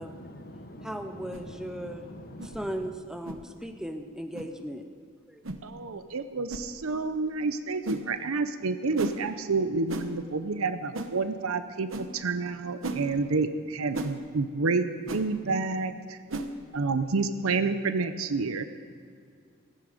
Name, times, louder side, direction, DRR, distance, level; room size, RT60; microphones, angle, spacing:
voice 1, 0.0-2.9, left 1 dB, 45° left, 6 dB, 1.3 m, -45 dB
voice 2, 0.8-2.1 2.4-4.8 5.3-5.4, equal, 5° right, 6 dB, 0.7 m, -37 dB
sound 1, 1.3-1.5 2.4-2.6 3.2-3.4 4.3-4.5 5.4-5.6 6.5-6.7 7.8-8.0 9.0-9.2 9.9-10.1 10.9-11.1 11.9-12.1 12.8-13.0 13.9-14.1 15.1-15.2 16.3-16.5, right 2 dB, 65° right, 1.0 m, -34 dB
voice 3, 5.6-16.2 16.7-18.6, right 4 dB, 85° right, 10 dB, 0.7 m, -29 dB
16.0 x 14.0 x 5.1 m, 2.3 s
head